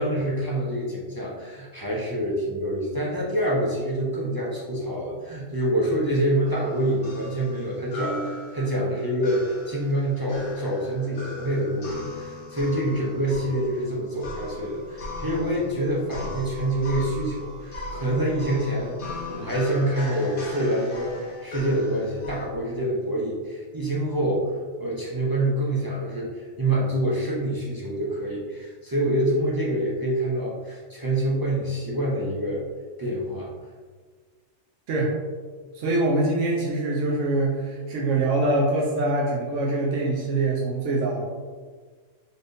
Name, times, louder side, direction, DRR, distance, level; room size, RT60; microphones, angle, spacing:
voice 1, 0.0-24.5 24.8-32.6 33.0-33.5, right 1 dB, 30° right, -6 dB, 0.4 m, -26 dB
sound 1, 6.4-22.5, left 2 dB, 50° left, 0.9 m, -38 dB
voice 2, 35.7-41.2, right 2 dB, 75° right, -3 dB, 1.0 m, -24 dB
4.1 x 3.2 x 2.6 m, 1.5 s
omnidirectional pair, 1.3 m